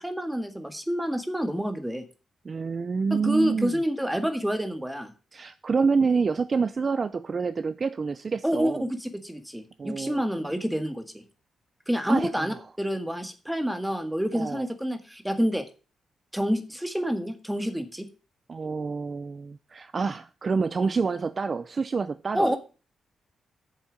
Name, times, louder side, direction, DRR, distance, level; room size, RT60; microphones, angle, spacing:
voice 1, 0.0-2.0 3.1-5.1 8.4-11.2 11.9-15.6 16.3-18.1 22.3-22.6, equal, 5° right, 7 dB, 1.7 m, -28 dB
voice 2, 2.4-3.7 5.3-8.9 9.8-10.5 12.1-12.5 14.3-14.7 18.5-22.6, right 5 dB, 35° right, 13 dB, 0.5 m, -27 dB
8.9 x 7.1 x 7.5 m, 0.35 s
wide cardioid pair, 145°, 0 cm